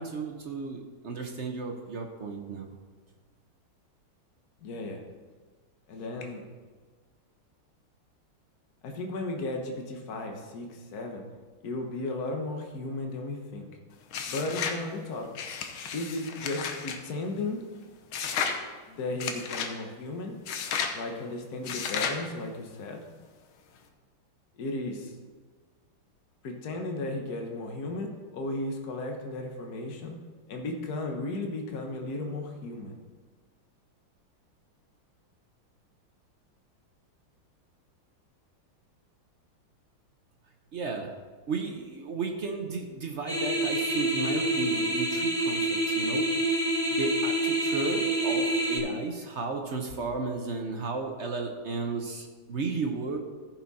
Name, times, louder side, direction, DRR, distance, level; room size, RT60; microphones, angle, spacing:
voice 1, 0.0-2.7 40.7-41.1 41.5-46.2 46.9-53.2, right 4 dB, 60° right, 3 dB, 0.7 m, -34 dB
voice 2, 4.6-5.0 5.9-6.4 8.8-11.2 11.6-13.7 14.3-15.3 15.9-17.6 18.9-20.4 20.9-23.0 24.6-25.1 26.4-30.1 30.5-32.9, left 2 dB, 50° left, 2 dB, 1.5 m, -35 dB
sound 1, 14.1-14.8 15.3-17.0 18.1-18.6 19.2-19.7 20.5-21.0 21.6-22.2, left 6 dB, 75° left, 1.7 m, -32 dB
sound 2, 43.3-48.8, right 1 dB, 5° left, 0.8 m, -27 dB
14.5 x 6.1 x 4.1 m, 1.4 s
omnidirectional pair, 2.3 m